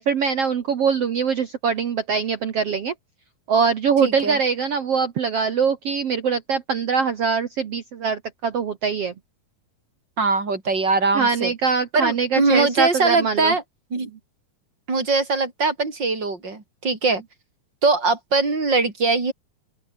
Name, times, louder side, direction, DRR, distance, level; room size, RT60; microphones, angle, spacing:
voice 1, 0.0-2.9 3.5-9.1 11.1-13.5, right 6 dB, 60° right, 1.7 m, -23 dB
voice 2, 4.0-4.4 10.2-11.5 11.9-13.6 13.9-14.1 14.9-17.2 17.8-19.3, right 3 dB, 30° right, 4.7 m, -21 dB
open air
omnidirectional pair, 4.5 m